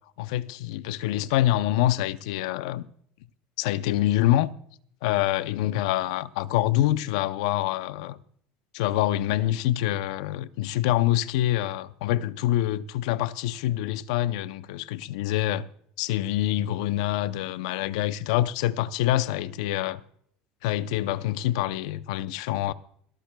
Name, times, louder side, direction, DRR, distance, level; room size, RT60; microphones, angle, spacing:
voice 1, 0.2-2.8 3.6-4.5 5.0-8.2 8.7-15.7 16.0-20.0 20.6-22.7, left 14 dB, 85° left, 0.5 m, -26 dB
22.5 x 13.5 x 2.2 m
cardioid pair, 140°, 3 cm